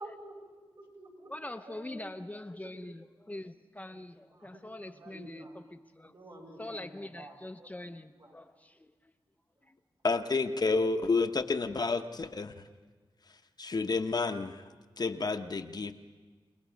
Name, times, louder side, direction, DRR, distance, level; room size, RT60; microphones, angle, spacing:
voice 1, 0.0-1.3 1.7-2.1 3.9-4.0 4.3-5.6 6.0-7.3 7.6-7.9 8.2-8.3, right 1 dB, 55° right, -1 dB, 6.2 m, -49 dB
voice 2, 1.3-6.1 6.6-9.1 9.6-9.8, left 1 dB, 15° left, 7 dB, 0.6 m, -44 dB
voice 3, 10.0-12.5 13.6-14.6 15.0-15.9, left 3 dB, 50° left, 7 dB, 0.8 m, -30 dB
29.0 x 18.5 x 5.1 m, 1.4 s
cardioid pair, 65°, 9 cm